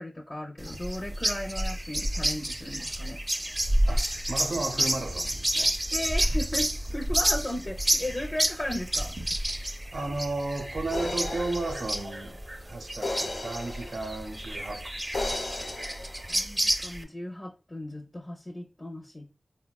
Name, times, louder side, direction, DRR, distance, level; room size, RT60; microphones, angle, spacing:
voice 1, 0.0-3.2 5.9-9.2 16.3-19.3, left 1 dB, 35° left, 0.5 m, -36 dB
sound 1, 0.6-17.0, right 1 dB, 20° right, 0.4 m, -30 dB
voice 2, 3.8-5.7 9.9-12.4 12.7-14.9 15.1-15.8, right 2 dB, 90° right, 0.6 m, -34 dB
sound 2, 10.9-14.4 15.1-16.4, left 2 dB, 85° left, 0.7 m, -36 dB
3.7 x 2.1 x 2.2 m
wide cardioid pair, 70°, 0 cm